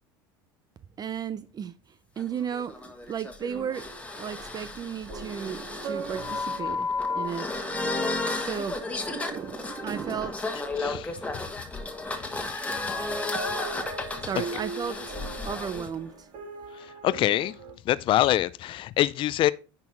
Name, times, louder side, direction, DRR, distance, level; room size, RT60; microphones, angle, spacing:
voice 1, 1.0-1.7 2.2-6.9 7.1-7.5 8.4-8.8 9.3-10.3 14.0-15.2 15.4-16.3, right 8 dB, 35° right, 0.6 m, -34 dB
sound 1, 2.2-15.9, left 3 dB, 10° left, 1.4 m, -33 dB
sound 2, 3.4-12.8 13.1-17.8, right 4 dB, 60° right, 2.1 m, -41 dB
voice 2, 10.8-11.3 12.2-12.7 16.7-17.5 17.8-19.5, left 14 dB, 45° left, 0.4 m, -26 dB
9.7 x 4.4 x 4.4 m
hypercardioid pair, 90°, 12 cm